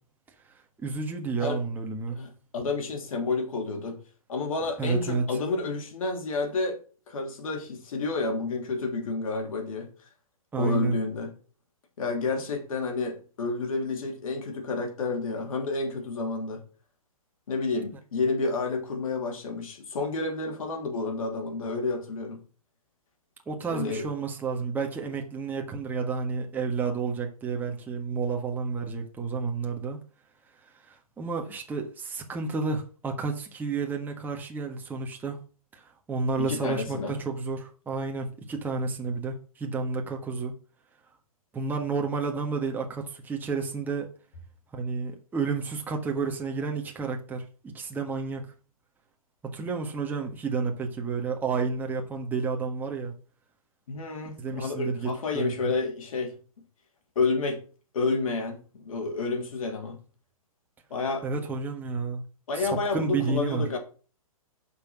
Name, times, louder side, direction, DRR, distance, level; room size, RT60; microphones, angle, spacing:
voice 1, 0.8-2.2 4.8-5.4 10.5-11.0 23.5-30.0 30.7-35.4 35.7-40.5 41.5-44.1 44.7-47.4 47.7-48.5 49.4-53.1 54.4-55.7 61.2-62.2 62.5-63.7, right 4 dB, 10° right, 1.5 m, -31 dB
voice 2, 2.2-4.0 4.3-6.8 7.1-9.9 10.5-11.3 12.0-16.6 17.5-22.4 23.7-24.0 36.4-37.1 53.9-56.4 57.2-57.6 57.9-60.0 60.9-61.3 62.5-63.8, left 3 dB, 65° left, 3.5 m, -30 dB
8.4 x 6.1 x 6.1 m
hypercardioid pair, 140°, 19 cm